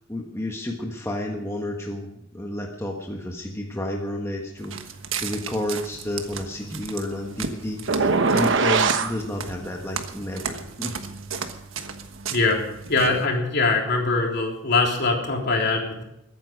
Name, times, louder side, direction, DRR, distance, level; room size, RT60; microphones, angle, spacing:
voice 1, 0.1-4.8 5.2-11.0, left 1 dB, 15° left, 0 dB, 1.4 m, -31 dB
Walk footsteps, 4.6-13.3, right 6 dB, 90° right, 1.4 m, -35 dB
sound 1, 7.9-9.1, right 4 dB, 65° right, 1.0 m, -20 dB
voice 2, 12.3-12.6 12.9-16.0, left 3 dB, 60° left, 0 dB, 3.6 m, -22 dB
22.0 x 9.5 x 5.2 m, 0.81 s
head